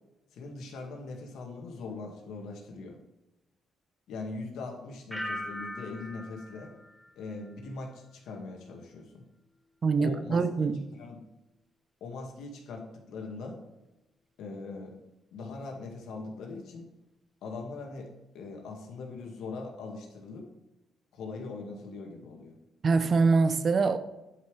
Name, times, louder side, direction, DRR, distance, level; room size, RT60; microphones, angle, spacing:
voice 1, 0.3-3.0 4.1-6.7 7.2-9.2 10.0-10.4 10.9-11.2 12.0-13.6 14.4-14.9 15.3-16.9 17.4-18.1 18.3-20.5 21.1-22.6, left 3 dB, 80° left, 1.9 m, -41 dB
sound 1, 5.1-7.9 8.3-8.8, left 1 dB, ahead, 1.0 m, -41 dB
voice 2, 9.8-10.8 22.8-24.0, right 4 dB, 45° right, 0.7 m, -24 dB
10.5 x 5.5 x 3.3 m
cardioid pair, 90°, 0 cm